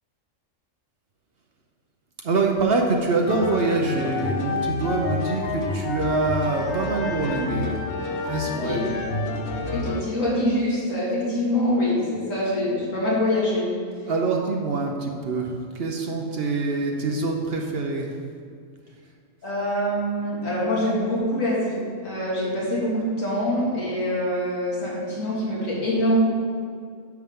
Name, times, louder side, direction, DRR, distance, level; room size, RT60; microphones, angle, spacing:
voice 1, 2.2-8.0 8.2-8.8 14.1-18.2, right 3 dB, 55° right, 1 dB, 0.9 m, -25 dB
sound 1, 3.3-10.0, left 3 dB, 65° left, 1.0 m, -29 dB
voice 2, 9.7-13.7 19.4-26.2, equal, 85° left, -6 dB, 2.6 m, -24 dB
9.4 x 7.1 x 3.6 m, 2.2 s
omnidirectional pair, 1.3 m